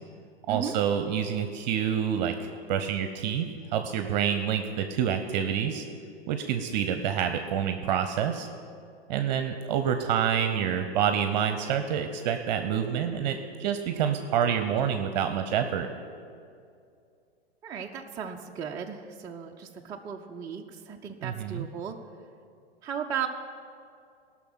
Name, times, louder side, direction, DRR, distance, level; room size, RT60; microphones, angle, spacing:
voice 1, 0.5-3.5 3.7-5.8 6.3-8.5 9.1-15.9 21.2-21.7, right 8 dB, 45° right, 7 dB, 0.7 m, -27 dB
voice 2, 17.6-22.0 22.8-23.3, right 8 dB, 10° right, 1 dB, 0.4 m, -36 dB
17.0 x 6.1 x 6.2 m, 2.4 s
figure-of-eight pair, 110°, 32 cm